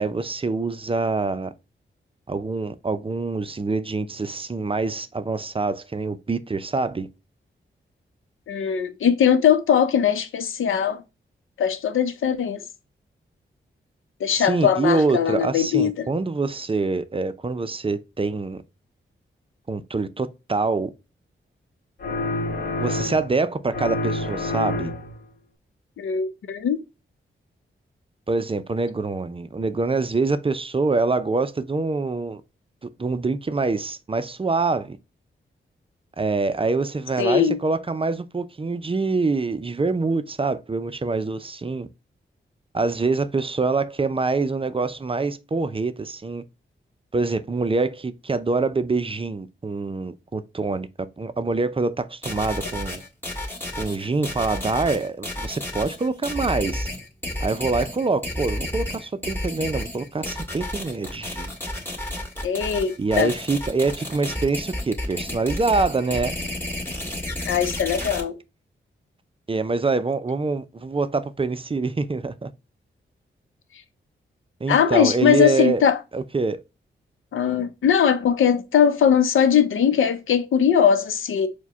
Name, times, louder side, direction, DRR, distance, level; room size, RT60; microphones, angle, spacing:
voice 1, 0.0-1.5 2.3-7.1 14.3-18.6 19.7-20.9 22.8-24.9 28.3-32.4 32.8-35.0 36.2-41.9 42.7-46.4 47.1-53.0 53.8-56.9 57.4-61.5 63.0-66.3 69.5-72.5 74.6-75.8 76.1-76.6, right 3 dB, 25° right, 0.5 m, -25 dB
voice 2, 8.5-11.0 11.6-12.6 14.2-16.1 26.0-26.8 37.2-37.6 62.4-63.3 67.4-68.4 74.7-76.0 77.3-81.5, left 8 dB, 85° left, 0.6 m, -20 dB
sound 1, 22.0-23.4 23.7-25.2, left 2 dB, 50° left, 1.1 m, -28 dB
sound 2, 52.2-68.2, left 1 dB, 10° left, 2.1 m, -31 dB
4.6 x 2.2 x 3.5 m
cardioid pair, 50°, 20 cm